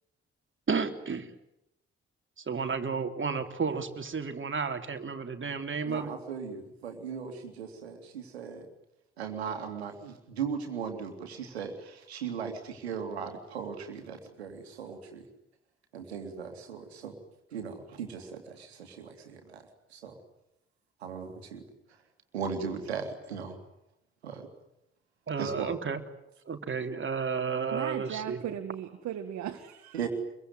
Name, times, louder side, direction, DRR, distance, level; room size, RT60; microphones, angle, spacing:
voice 1, 0.7-1.3 2.4-6.1 25.3-26.0 26.5-28.4, right 5 dB, 40° right, 6 dB, 3.2 m, -32 dB
voice 2, 5.9-8.7 9.2-15.2 15.9-17.2 17.5-19.6 19.9-20.1 21.0-21.6 22.3-23.6 24.2-24.5 25.4-25.7 29.9-30.1, right 6 dB, 90° right, 6 dB, 2.7 m, -38 dB
voice 3, 27.7-30.1, right 10 dB, 65° right, 5 dB, 2.0 m, -37 dB
25.0 x 23.0 x 9.6 m, 0.84 s
hypercardioid pair, 40°, 31 cm